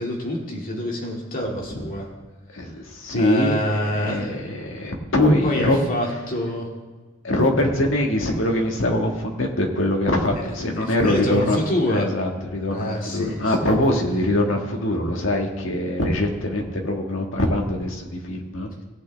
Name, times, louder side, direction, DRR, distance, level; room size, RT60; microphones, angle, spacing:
voice 1, 0.0-2.1 3.1-4.3 5.4-6.7 10.4-12.0 12.7-13.7, left 1 dB, 45° left, -2 dB, 2.3 m, -27 dB
voice 2, 2.5-5.8 7.2-11.6 11.9-18.8, left 1 dB, 75° left, 1 dB, 1.7 m, -23 dB
18.5 x 8.4 x 3.5 m, 1.3 s
head